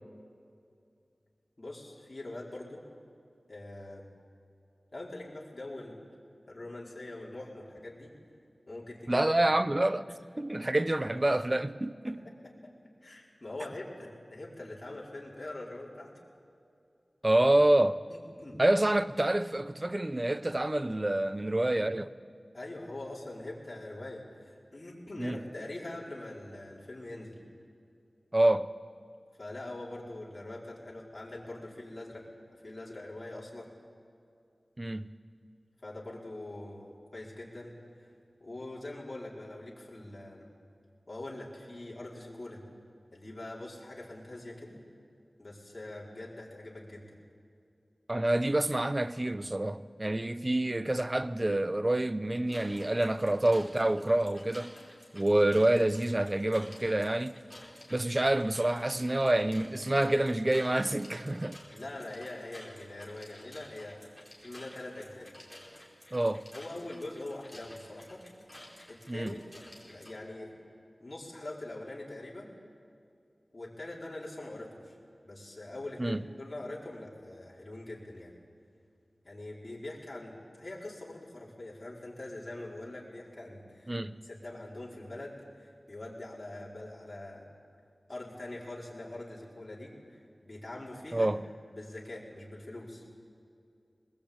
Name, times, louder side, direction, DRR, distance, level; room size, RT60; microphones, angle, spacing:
voice 1, 1.6-2.8 3.5-4.1 4.9-6.1 6.5-8.1 8.7-9.3 12.1-12.7 13.0-16.1 18.1-18.6 22.5-27.4 29.4-32.3 32.6-33.7 35.8-38.1 38.4-40.5 41.1-42.6 43.1-44.8 45.4-47.2 61.7-64.1 64.4-65.3 66.5-68.2 68.9-69.4 69.8-70.5 71.0-72.5 73.5-74.9 75.2-78.3 79.2-83.9 84.2-87.5 88.1-91.3 91.7-93.0, left 2 dB, 45° left, 4.8 m, -43 dB
voice 2, 9.1-10.1 10.4-12.2 17.2-18.0 18.6-22.1 25.2-25.4 28.3-28.7 34.8-35.1 48.1-54.7 55.1-57.4 57.9-61.6 66.1-66.4 69.1-69.4 76.0-76.2 83.9-84.2 91.1-91.4, right 1 dB, 30° right, 0.8 m, -27 dB
sound 1, 52.5-70.1, left 1 dB, 10° left, 5.6 m, -52 dB
21.5 x 20.5 x 8.9 m
wide cardioid pair, 60°, 0 cm